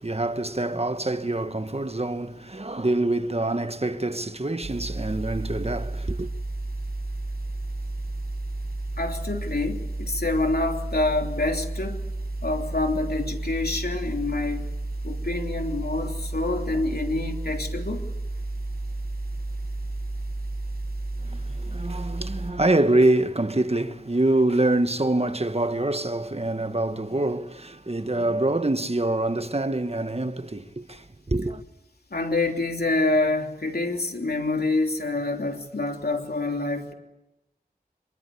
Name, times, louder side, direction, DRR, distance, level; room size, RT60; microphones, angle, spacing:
voice 1, 0.0-6.3 21.2-31.6, right 2 dB, 40° right, 1.4 m, -25 dB
sound 1, 4.6-22.5, right 2 dB, 90° right, 4.8 m, -32 dB
voice 2, 9.0-12.1 12.4-14.7 15.0-18.1 32.1-36.9, left 2 dB, 85° left, 3.3 m, -27 dB
27.5 x 23.0 x 8.5 m
wide cardioid pair, 40°, 16 cm